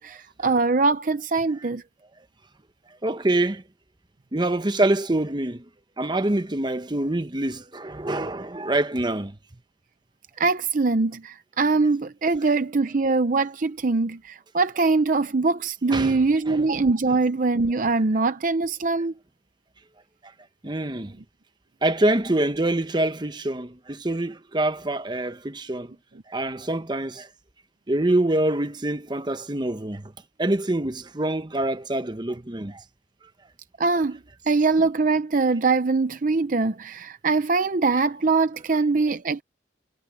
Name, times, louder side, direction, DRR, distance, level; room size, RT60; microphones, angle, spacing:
voice 1, 0.0-1.8 10.4-19.1 33.8-34.2 34.5-39.4, right 3 dB, 45° right, 0.6 m, -22 dB
voice 2, 3.0-3.6 4.3-5.6 6.0-9.3 15.9-16.2 16.5-16.6 20.6-21.1 21.8-25.9 26.3-27.3 27.9-30.1 30.4-32.8, right 1 dB, 25° right, 0.9 m, -25 dB
head